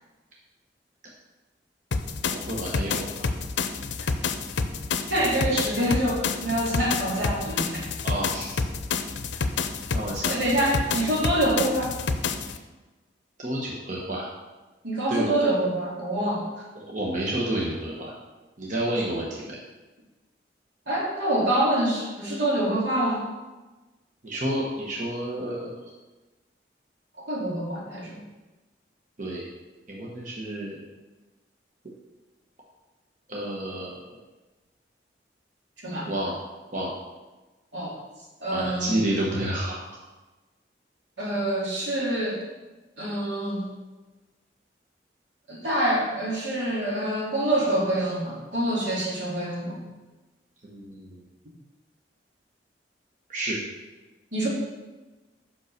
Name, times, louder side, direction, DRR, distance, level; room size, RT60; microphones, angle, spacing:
sound 1, 1.9-12.6, left 4 dB, 80° left, 0.5 m, -29 dB
voice 1, 2.3-3.3 8.0-8.6 9.9-10.4 13.4-14.2 15.1-15.3 16.7-18.1 18.6-19.6 24.2-25.7 29.2-29.5 29.9-30.8 33.3-34.0 36.1-36.4 36.7-36.9 38.5-39.8 50.6-51.2 53.3-53.6, right 1 dB, 45° right, -3 dB, 1.1 m, -30 dB
voice 2, 5.1-7.9 10.3-11.9 14.8-16.7 20.9-23.2 27.2-28.2 35.8-36.1 37.7-37.9 38.4-39.0 41.2-42.4 43.0-43.7 45.5-49.8 54.3-54.5, right 1 dB, 85° right, -5 dB, 2.6 m, -26 dB
5.6 x 5.3 x 6.5 m, 1.2 s
head